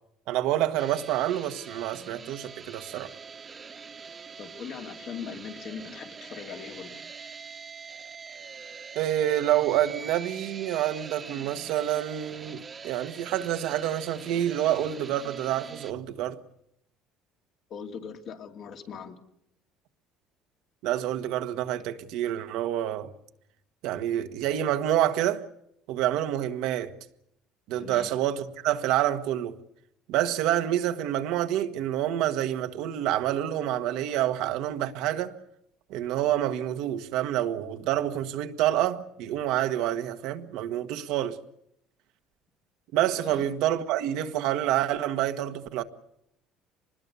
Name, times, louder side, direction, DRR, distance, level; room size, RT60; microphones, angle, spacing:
voice 1, 0.3-3.1 8.9-16.4 20.8-23.1 23.8-25.4 25.9-26.9 27.7-29.6 30.1-35.3 35.9-41.4 42.9-45.8, right 12 dB, 75° right, 1.4 m, -27 dB
sound 1, 0.8-15.9, right 5 dB, 30° right, 1.3 m, -44 dB
voice 2, 4.4-7.0 17.7-19.2 27.8-28.1 43.2-43.5, left 7 dB, 55° left, 2.6 m, -40 dB
24.5 x 20.5 x 6.9 m
supercardioid pair, 90°, 0 cm